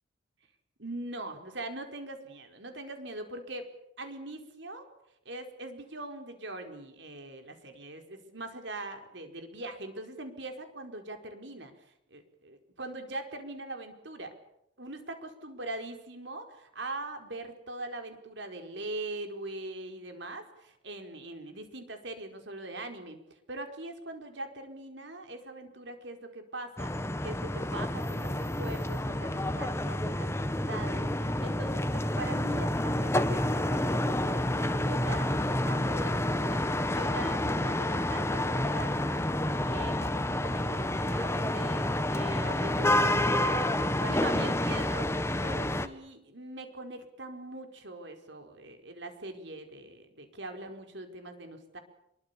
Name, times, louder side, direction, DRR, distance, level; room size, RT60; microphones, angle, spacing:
voice 1, 0.8-3.7 4.0-4.9 5.2-11.7 12.1-14.3 14.8-23.2 23.5-39.2 39.4-45.1 45.4-51.8, right 2 dB, 65° right, 5 dB, 4.9 m, -42 dB
sound 1, 26.8-45.9, left 1 dB, 15° left, 1.3 m, -29 dB
27.0 x 23.5 x 7.1 m, 0.77 s
head